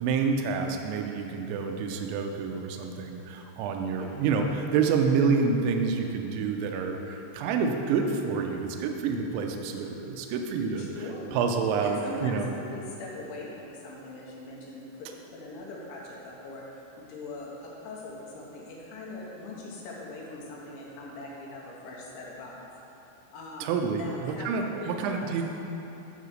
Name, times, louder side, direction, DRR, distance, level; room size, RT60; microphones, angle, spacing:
voice 1, 0.0-11.0 11.3-12.5 23.6-25.5, right 5 dB, 85° right, 3 dB, 2.6 m, -28 dB
voice 2, 10.8-11.3 11.8-16.6 17.0-22.7 23.3-25.4, left 2 dB, 75° left, -3 dB, 3.2 m, -41 dB
9.7 x 5.1 x 6.2 m, 3.0 s
omnidirectional pair, 5.9 m